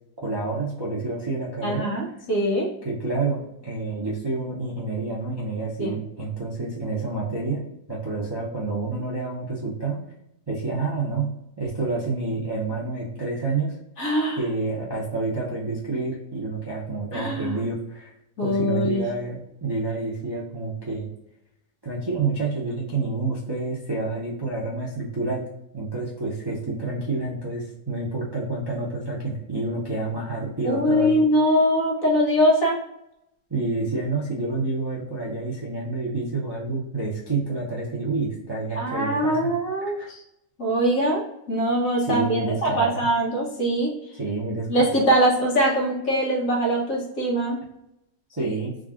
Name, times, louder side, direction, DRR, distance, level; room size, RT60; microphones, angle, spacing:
voice 1, 0.2-1.9 2.8-7.6 7.9-10.0 10.5-11.3 11.6-13.8 14.4-18.1 18.4-21.1 21.8-25.4 25.7-31.2 33.5-39.4 40.0-40.1 42.1-43.0 44.2-45.0 48.3-48.7, right 3 dB, 30° right, -7 dB, 0.4 m, -28 dB
voice 2, 1.6-2.7 5.8-5.9 14.0-14.4 17.1-17.6 18.4-19.0 30.6-32.8 38.7-40.2 40.6-43.9 44.7-47.6, equal, 50° left, -3 dB, 1.4 m, -22 dB
3.8 x 2.5 x 3.7 m, 0.83 s
omnidirectional pair, 1.9 m